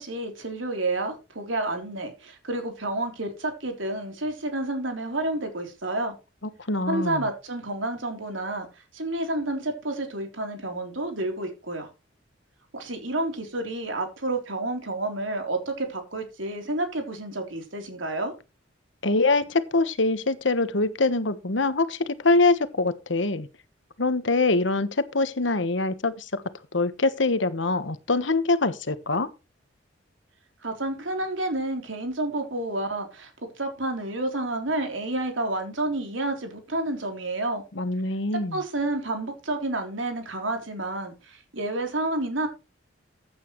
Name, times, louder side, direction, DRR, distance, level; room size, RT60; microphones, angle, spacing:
voice 1, 0.0-6.2 6.9-11.9 12.7-18.3 30.6-33.3 33.6-37.6 38.5-42.5, right 2 dB, 85° right, 3.6 m, -30 dB
voice 2, 6.7-7.3 19.0-23.5 24.0-26.4 26.7-29.3 37.7-38.6, left 3 dB, 70° left, 1.3 m, -24 dB
15.0 x 9.4 x 3.2 m
head